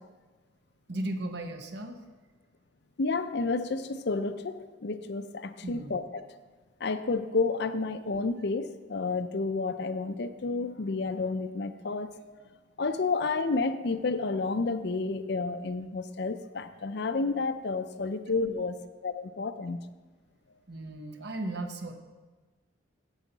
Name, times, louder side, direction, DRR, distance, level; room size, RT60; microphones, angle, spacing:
voice 1, 0.9-2.3 5.6-5.9 6.5-6.6 20.7-21.9, right 1 dB, 60° right, 5 dB, 1.0 m, -36 dB
voice 2, 3.0-6.2 6.8-12.1 12.8-19.8, left 3 dB, 60° left, 11 dB, 0.5 m, -30 dB
15.5 x 5.7 x 4.0 m, 1.3 s
head